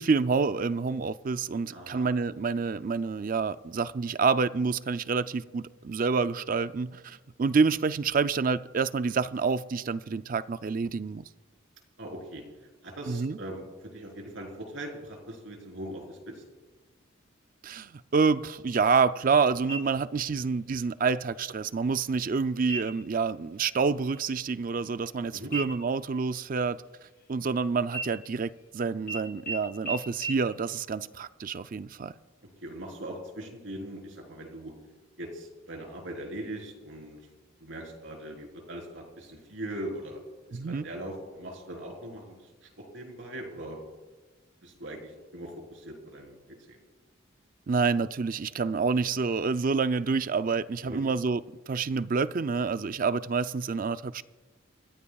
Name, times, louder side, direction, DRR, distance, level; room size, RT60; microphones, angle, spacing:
voice 1, 0.0-11.2 13.1-13.4 17.6-26.8 27.3-32.1 40.5-40.9 47.7-51.4 51.7-54.2, right 5 dB, 40° right, 0.4 m, -28 dB
voice 2, 1.7-2.1 12.0-12.4 12.8-13.6 13.9-16.4 25.3-25.5 32.6-34.7 35.2-37.2 37.6-40.2 40.5-42.4 42.6-43.8 44.6-46.4 46.7-46.8 50.8-51.0, right 1 dB, 65° right, 4.1 m, -40 dB
sound 1, 19.7-20.3 20.7-20.8 21.4-21.9 22.6-23.1 23.5-23.8 24.1-25.2 25.5-27.5 27.9-28.7 29.1-29.2 29.5-29.6 29.9-30.0 30.2-30.3, right 3 dB, 45° left, 4.0 m, -38 dB
28.0 x 15.0 x 2.4 m
head